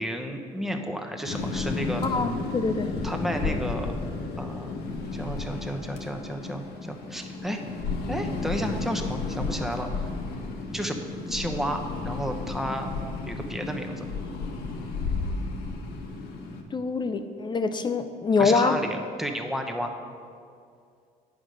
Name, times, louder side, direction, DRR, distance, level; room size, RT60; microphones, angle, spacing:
voice 1, 0.0-2.2 3.0-3.9 4.4-4.7 5.1-7.6 8.1-10.1 10.7-11.0 11.3-12.9 13.3-14.0 18.4-19.9, equal, ahead, 4 dB, 0.9 m, -32 dB
sound 1, 1.2-16.6, left 3 dB, 75° left, 1.2 m, -33 dB
voice 2, 2.0-3.0 16.7-18.8, left 4 dB, 25° left, 9 dB, 0.5 m, -25 dB
9.8 x 5.2 x 6.3 m, 2.2 s
cardioid pair, 110°, 17 cm